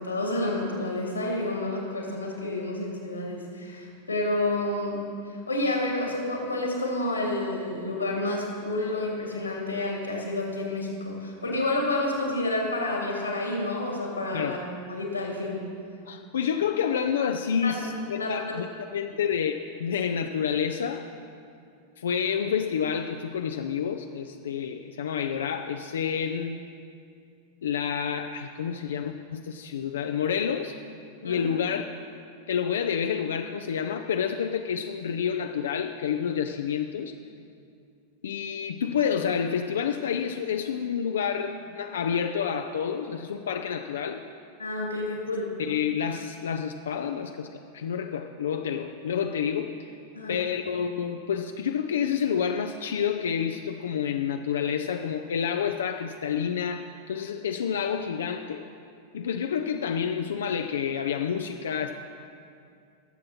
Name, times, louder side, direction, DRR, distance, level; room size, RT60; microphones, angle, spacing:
voice 1, 0.0-5.0 5.3-14.6 14.9-15.6 17.6-17.7 18.2-18.5 31.2-31.5 44.6-45.5 50.1-50.4, left 2 dB, 85° left, -1 dB, 2.5 m, -29 dB
voice 2, 16.1-21.1 22.0-26.6 27.6-30.8 31.2-31.9 32.5-37.1 38.2-44.2 45.6-47.5 47.7-49.7 50.3-58.6 59.1-61.9, left 7 dB, 65° left, 5 dB, 0.4 m, -29 dB
20.5 x 7.5 x 4.3 m, 2.4 s
figure-of-eight pair, 90°, 0 cm